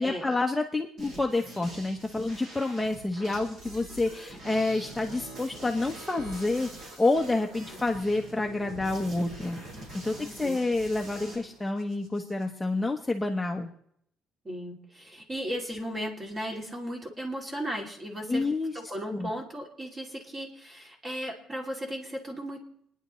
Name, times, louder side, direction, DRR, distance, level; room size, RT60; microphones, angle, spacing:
voice 1, 0.0-9.6 9.9-13.7 18.3-18.8 19.1-19.3, left 2 dB, 10° left, 2 dB, 1.0 m, -28 dB
sound 1, 1.0-11.3, right 1 dB, 45° right, 5.7 m, -45 dB
sound 2, 4.4-12.4, right 2 dB, 70° right, 7.2 m, -49 dB
voice 2, 10.2-10.6 14.4-18.5 18.7-22.6, equal, 25° right, 1 dB, 2.7 m, -36 dB
28.0 x 10.0 x 3.2 m, 0.70 s
cardioid pair, 145°, 0 cm